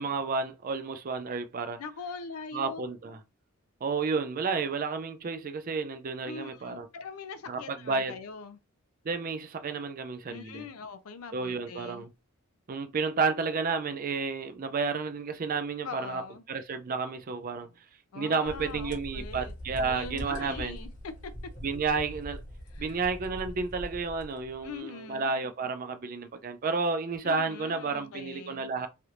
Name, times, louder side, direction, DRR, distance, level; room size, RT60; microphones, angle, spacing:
voice 1, 0.0-1.8 2.5-3.2 3.8-6.9 7.5-8.2 9.0-10.7 11.3-12.1 12.7-16.2 16.5-17.7 18.1-20.8 21.6-22.4 22.8-28.9, right 4 dB, 40° right, 0.4 m, -31 dB
voice 2, 1.8-2.8 6.2-8.6 10.2-12.1 15.8-16.4 18.1-21.3 22.7-23.0 24.6-25.3 27.2-28.7, left 5 dB, 75° left, 0.5 m, -42 dB
sound 1, 18.4-24.8, equal, 35° left, 1.2 m, -42 dB
3.3 x 2.4 x 2.8 m
head